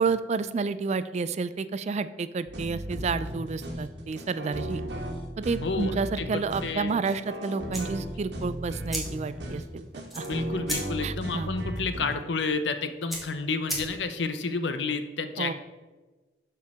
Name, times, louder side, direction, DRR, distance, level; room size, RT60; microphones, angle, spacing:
voice 1, 0.0-4.8 5.4-10.3 11.0-11.5 15.4-15.5, right 4 dB, 40° right, 13 dB, 0.3 m, -30 dB
sound 1, 2.5-12.2, equal, 65° right, 1.5 m, -36 dB
voice 2, 5.6-5.9 6.2-7.0 10.3-15.5, left 4 dB, 80° left, 9 dB, 0.7 m, -30 dB
sound 2, 7.6-14.3, right 1 dB, ahead, 1.9 m, -39 dB
12.5 x 4.6 x 3.5 m, 1.2 s
head